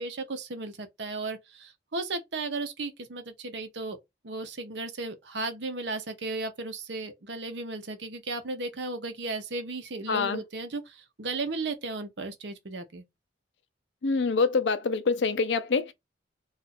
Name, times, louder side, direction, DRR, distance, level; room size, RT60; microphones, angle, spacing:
voice 1, 0.0-4.0 4.2-13.0, right 3 dB, 75° right, 0.8 m, -35 dB
voice 2, 10.1-10.4 14.0-15.9, left 4 dB, 80° left, 0.5 m, -25 dB
2.5 x 2.4 x 4.1 m
head